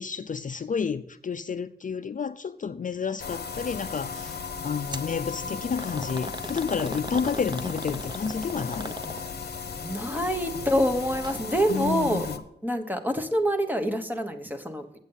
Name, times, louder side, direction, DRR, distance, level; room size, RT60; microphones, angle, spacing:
voice 1, 0.0-4.4 4.6-8.9 11.7-12.4, left 6 dB, 45° left, 0.4 m, -30 dB
sound 1, 3.2-12.4, left 5 dB, 65° left, 0.9 m, -36 dB
sound 2, 4.9-5.1 5.8-9.5 11.1-11.4 11.7-11.8 12.7-12.8, right 2 dB, 25° right, 0.7 m, -38 dB
voice 2, 9.7-12.3 12.6-15.0, equal, 10° right, 1.2 m, -26 dB
8.3 x 8.1 x 5.5 m
wide cardioid pair, 95°, 18 cm